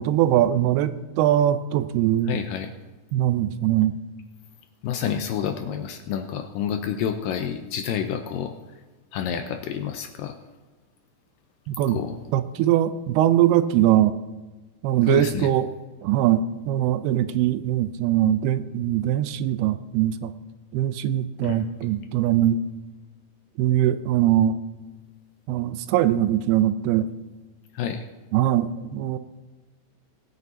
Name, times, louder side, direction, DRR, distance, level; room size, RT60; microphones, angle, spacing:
voice 1, 0.0-2.4 3.1-4.0 11.7-12.0 12.3-14.2 14.8-15.7 16.0-20.3 20.7-22.6 23.6-24.6 25.5-27.1 28.3-29.2, right 12 dB, 85° right, 12 dB, 2.6 m, -21 dB
voice 2, 2.3-2.7 4.8-8.5 9.1-10.4 11.9-12.2 15.1-15.5 21.4-21.6 27.7-28.1, left 8 dB, 85° left, 5 dB, 2.1 m, -29 dB
20.5 x 9.2 x 2.7 m, 1.2 s
omnidirectional pair, 4.6 m